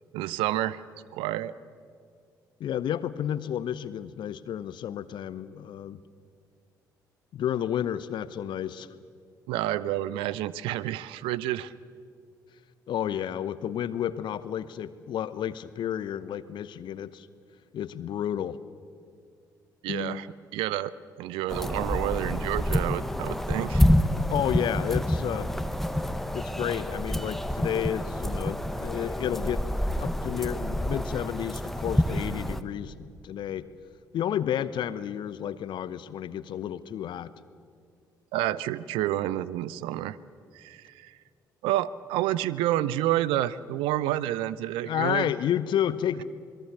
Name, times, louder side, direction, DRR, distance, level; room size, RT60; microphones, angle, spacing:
voice 1, 0.1-0.8 1.1-1.5 9.5-11.7 19.8-20.3 20.5-20.9 21.2-23.9 38.3-40.2 40.5-41.1 41.6-45.3, right 14 dB, 65° right, 18 dB, 0.6 m, -29 dB
voice 2, 2.6-6.0 7.3-8.9 12.9-17.3 17.7-18.6 19.9-20.3 24.3-25.5 26.3-29.6 30.0-33.7 34.1-37.3 44.8-46.2, left 10 dB, 50° left, 16 dB, 0.9 m, -31 dB
sound 1, 21.5-32.6, equal, 5° left, 1.2 m, -28 dB
26.5 x 22.0 x 6.8 m, 2.2 s
figure-of-eight pair, 45°, 10 cm